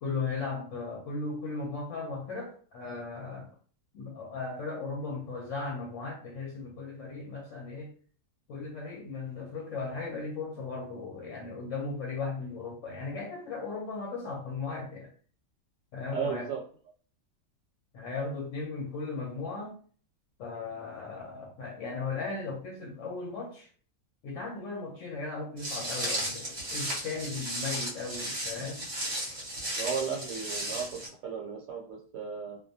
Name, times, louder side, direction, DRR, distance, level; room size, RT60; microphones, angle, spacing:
voice 1, 0.0-3.5 3.9-7.9 8.5-15.1 15.9-16.5 17.9-19.8 20.4-23.7 24.2-28.8, left 4 dB, 65° left, 0.9 m, -37 dB
voice 2, 16.1-16.6 29.8-32.6, right 6 dB, 75° right, 1.0 m, -35 dB
Walk footsteps, 25.6-31.1, right 1 dB, 40° right, 0.7 m, -35 dB
2.3 x 2.2 x 2.6 m
omnidirectional pair, 1.5 m